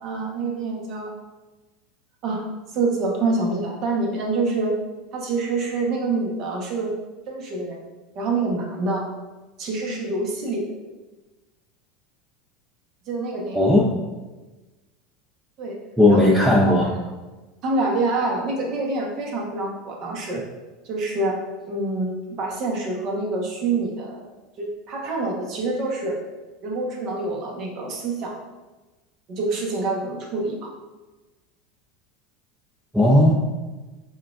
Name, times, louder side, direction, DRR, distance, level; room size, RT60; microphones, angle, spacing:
voice 1, 0.0-1.1 2.2-2.4 2.7-4.7 5.1-6.9 7.3-7.8 8.1-9.0 9.6-10.7 13.1-13.6 15.6-15.8 16.1-16.9 17.6-20.4 20.8-21.4 21.7-24.2 24.6-26.2 26.6-28.3 29.3-30.7, right 3 dB, 50° right, -1 dB, 1.0 m, -26 dB
voice 2, 13.5-13.8 16.0-16.9 32.9-33.3, left 1 dB, 5° right, -4 dB, 0.5 m, -16 dB
5.6 x 2.4 x 2.5 m, 1.2 s
supercardioid pair, 120°, 0 cm